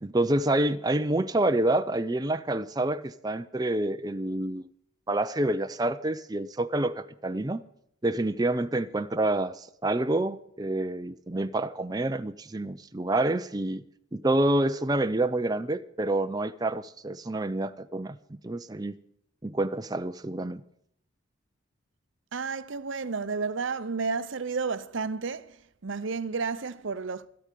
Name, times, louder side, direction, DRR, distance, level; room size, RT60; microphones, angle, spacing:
voice 1, 0.0-4.7 5.1-7.6 8.0-13.8 14.1-18.2 18.4-18.9 19.4-20.6, right 1 dB, 20° right, 0.5 m, -28 dB
voice 2, 22.3-27.3, right 4 dB, 70° right, 0.7 m, -32 dB
13.5 x 8.3 x 9.2 m
head